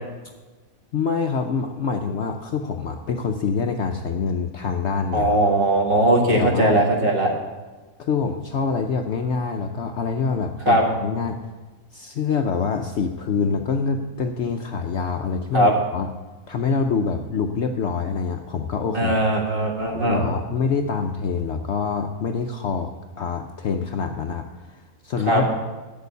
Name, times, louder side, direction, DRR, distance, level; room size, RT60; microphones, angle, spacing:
voice 1, 0.9-5.5 6.4-6.8 8.0-11.4 11.9-16.1 16.5-19.1 19.9-22.9 23.2-25.6, left 5 dB, 60° left, 5 dB, 0.8 m, -25 dB
voice 2, 5.1-7.3 10.7-10.8 15.5-15.7 18.9-20.2 25.3-25.4, right 1 dB, 40° right, 0 dB, 1.8 m, -19 dB
8.6 x 6.7 x 8.1 m, 1.2 s
omnidirectional pair, 1.5 m